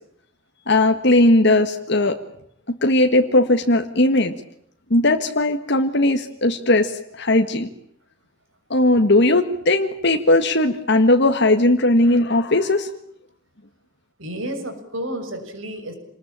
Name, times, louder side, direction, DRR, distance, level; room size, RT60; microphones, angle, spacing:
voice 1, 0.7-2.2 2.8-4.3 4.9-7.7 8.7-12.9, left 2 dB, 60° left, 5 dB, 1.7 m, -18 dB
voice 2, 14.2-15.9, right 1 dB, 80° right, 8 dB, 6.7 m, -31 dB
28.0 x 20.5 x 8.8 m, 0.71 s
head